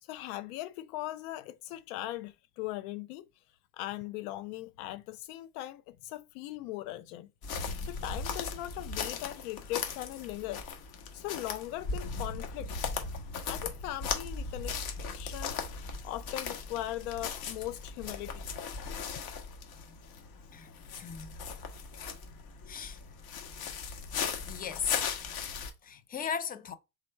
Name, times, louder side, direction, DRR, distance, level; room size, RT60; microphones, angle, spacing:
voice 1, 0.0-3.2 3.8-7.3 7.8-10.6 11.1-12.7 13.5-14.8 15.1-18.5 24.1-24.2, left 15 dB, 85° left, 0.6 m, -39 dB
sound 1, 7.4-25.7, left 5 dB, 55° left, 1.3 m, -38 dB
voice 2, 21.0-21.4 22.7-23.0 24.5-25.0 25.8-26.7, left 7 dB, 20° left, 0.4 m, -36 dB
3.6 x 3.2 x 4.3 m
supercardioid pair, 120°, 42 cm